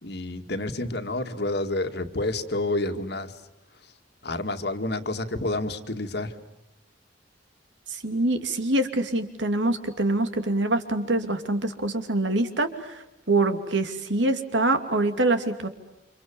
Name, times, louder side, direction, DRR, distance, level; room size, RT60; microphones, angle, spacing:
voice 1, 0.0-3.4 3.8-3.9 4.2-6.4, left 2 dB, 60° left, 7 dB, 2.1 m, -29 dB
voice 2, 7.9-13.0 13.3-15.7, right 2 dB, 75° right, 8 dB, 2.7 m, -25 dB
30.0 x 27.0 x 7.2 m, 0.92 s
head